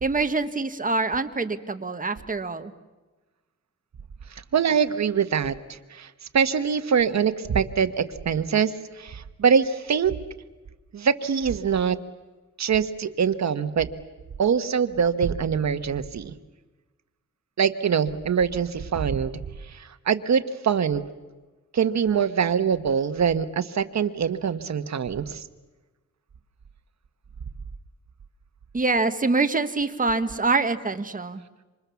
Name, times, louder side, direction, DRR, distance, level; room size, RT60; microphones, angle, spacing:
voice 1, 0.0-2.7 28.7-31.4, right 3 dB, 25° right, 8 dB, 1.4 m, -25 dB
voice 2, 4.5-10.1 10.9-12.0 12.6-13.9 14.4-16.3 17.6-19.3 19.6-21.0 21.7-25.5, right 7 dB, 65° right, 10 dB, 1.3 m, -24 dB
27.5 x 26.0 x 7.1 m, 1.2 s
wide cardioid pair, 145°, 30 cm